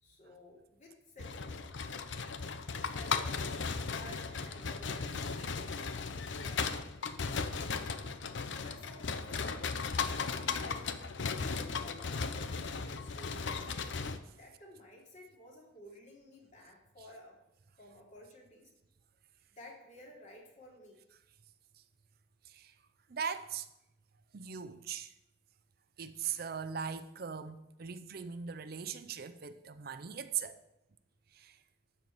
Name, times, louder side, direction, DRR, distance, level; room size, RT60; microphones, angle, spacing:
voice 1, 0.0-1.7 2.7-3.5 3.9-6.1 6.4-6.7 7.5-7.9 8.5-9.6 10.1-11.0 11.4-13.7 14.4-17.4 17.8-18.7 19.5-21.0, left 1 dB, 45° left, 3.0 m, -54 dB
sound 1, 1.2-14.2, left 5 dB, 85° left, 0.7 m, -36 dB
voice 2, 23.1-23.7 24.3-25.1 26.0-30.6 31.3-31.6, right 7 dB, 55° right, 0.6 m, -40 dB
12.5 x 4.6 x 7.8 m
head